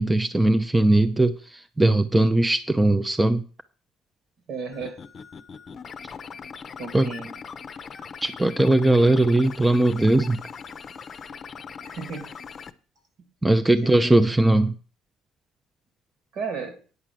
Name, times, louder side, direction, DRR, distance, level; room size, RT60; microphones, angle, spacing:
voice 1, 0.0-3.4 6.9-7.1 8.2-10.4 13.4-14.8, right 2 dB, 10° right, 10 dB, 0.6 m, -19 dB
voice 2, 4.5-5.0 6.8-7.3 11.8-12.3 13.8-14.2 16.3-16.8, right 5 dB, 65° right, 8 dB, 2.8 m, -34 dB
sound 1, 4.7-12.7, left 6 dB, 40° left, 0.8 m, -40 dB
9.5 x 4.9 x 7.7 m, 0.39 s
supercardioid pair, 85°, 0 cm